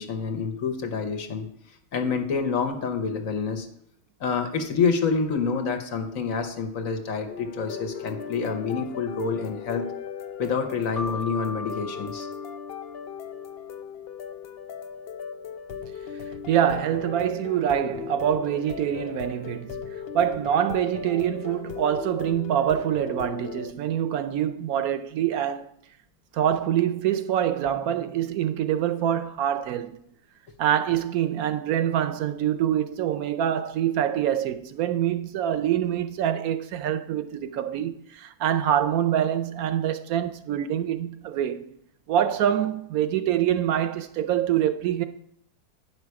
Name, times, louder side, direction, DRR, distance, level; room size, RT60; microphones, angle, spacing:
voice 1, 0.0-1.5 1.9-3.7 4.2-9.9 10.4-12.3, left 5 dB, 60° left, 1.3 m, -27 dB
sound 1, 7.3-23.7, left 7 dB, 85° left, 0.5 m, -37 dB
Keyboard (musical), 11.0-13.5, left 2 dB, 15° left, 0.8 m, -38 dB
voice 2, 16.5-19.9 20.1-25.7 26.3-30.0 30.6-41.7 42.1-45.1, right 10 dB, 75° right, 1.0 m, -25 dB
9.4 x 5.8 x 4.7 m
omnidirectional pair, 1.6 m